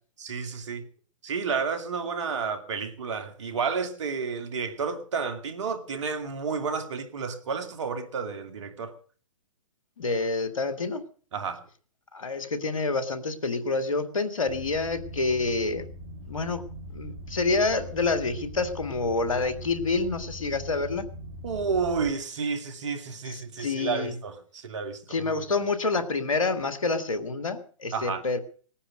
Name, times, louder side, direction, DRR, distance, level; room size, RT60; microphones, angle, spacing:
voice 1, 0.2-0.8 1.2-9.0 11.3-11.6 21.4-25.5 27.9-28.2, right 5 dB, 60° right, 2.4 m, -31 dB
voice 2, 10.0-11.0 12.1-15.9 16.2-16.6 16.9-21.1 23.3-24.1 25.1-28.4, left 3 dB, 80° left, 2.0 m, -28 dB
sound 1, 14.5-22.1, right 1 dB, 35° right, 3.1 m, -41 dB
19.5 x 10.0 x 6.3 m
hypercardioid pair, 125°, 17 cm